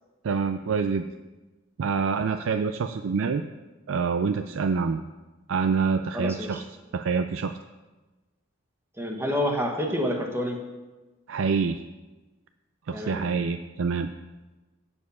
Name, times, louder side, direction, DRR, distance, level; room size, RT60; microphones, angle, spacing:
voice 1, 0.2-1.0 1.8-3.4 3.9-5.0 5.5-6.6 6.9-7.5 11.3-11.8 12.9-14.1, right 5 dB, 75° right, 8 dB, 0.4 m, -26 dB
voice 2, 6.1-6.6 9.0-10.6 12.9-13.3, equal, 10° right, 2 dB, 1.2 m, -28 dB
8.4 x 7.0 x 6.8 m, 1.2 s
head